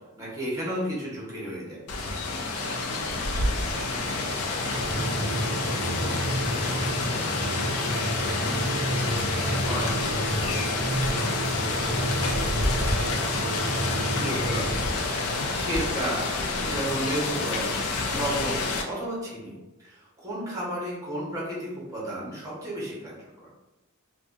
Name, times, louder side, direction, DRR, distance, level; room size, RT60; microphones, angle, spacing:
voice 1, 0.2-1.8 9.6-10.1 14.2-14.8 15.3-16.3 16.6-17.8 18.1-23.1, right 1 dB, 15° right, -5 dB, 0.8 m, -33 dB
Rain, 1.9-18.8, left 3 dB, 75° left, 0.4 m, -28 dB
voice 2, 2.6-8.3 9.1-9.6 9.9-12.9, right 2 dB, 65° right, -1 dB, 0.4 m, -44 dB
sound 1, 4.6-14.9, equal, 55° left, 1.0 m, -31 dB
2.4 x 2.2 x 2.4 m, 1.0 s
head